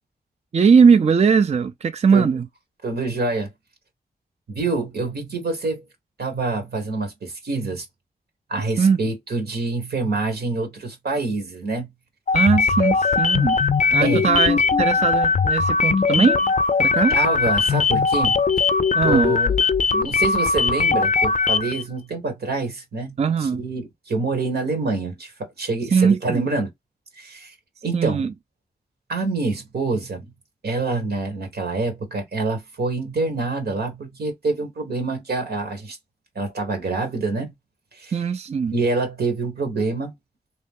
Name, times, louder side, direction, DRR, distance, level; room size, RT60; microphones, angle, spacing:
voice 1, 0.5-2.5 8.8-9.0 12.3-13.6 13.9-16.4 16.8-17.2 18.9-19.4 23.2-23.6 25.9-26.5 27.9-28.3 38.1-38.8, right 6 dB, 45° right, 0.4 m, -19 dB
voice 2, 2.8-3.5 4.5-5.9 6.2-7.8 8.5-11.9 14.0-14.3 17.1-18.4 19.0-19.5 19.9-26.7 27.2-27.5 27.8-28.2 29.1-30.3 30.6-36.0 36.3-37.5 37.9-38.1 38.7-40.1, right 3 dB, 85° right, 1.2 m, -26 dB
sound 1, 12.3-21.8, left 5 dB, 50° left, 0.4 m, -20 dB
2.9 x 2.6 x 3.6 m
cardioid pair, 45°, 16 cm